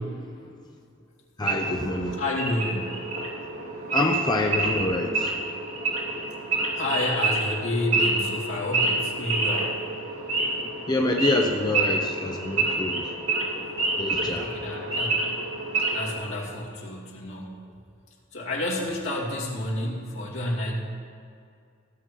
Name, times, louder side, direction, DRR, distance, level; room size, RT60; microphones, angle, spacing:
voice 1, 1.4-2.2 3.9-5.4 10.9-13.1 14.0-14.5, left 2 dB, 20° left, 0 dB, 0.7 m, -26 dB
Wild animals / Idling, 1.4-16.1, right 2 dB, 70° right, 2.8 m, -28 dB
voice 2, 2.2-3.0 6.7-9.7 14.4-15.2 15.9-17.6 18.3-20.8, left 1 dB, 70° left, -4 dB, 2.5 m, -30 dB
16.5 x 7.6 x 4.6 m, 2.3 s
head